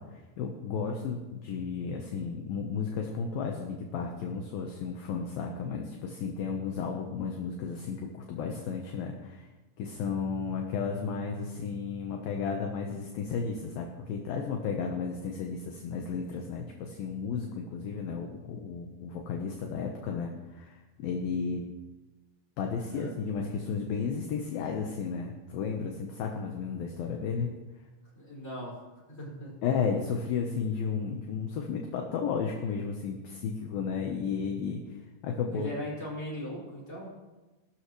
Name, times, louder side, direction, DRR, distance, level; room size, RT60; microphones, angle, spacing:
voice 1, 0.0-9.5 9.8-21.6 22.6-27.6 29.6-34.8 35.2-35.8, left 5 dB, 70° left, 2 dB, 2.4 m, -33 dB
voice 2, 28.2-28.8 29.1-29.5 35.5-37.1, left 1 dB, 15° left, -6 dB, 5.5 m, -39 dB
20.0 x 12.5 x 3.2 m, 1.2 s
omnidirectional pair, 5.2 m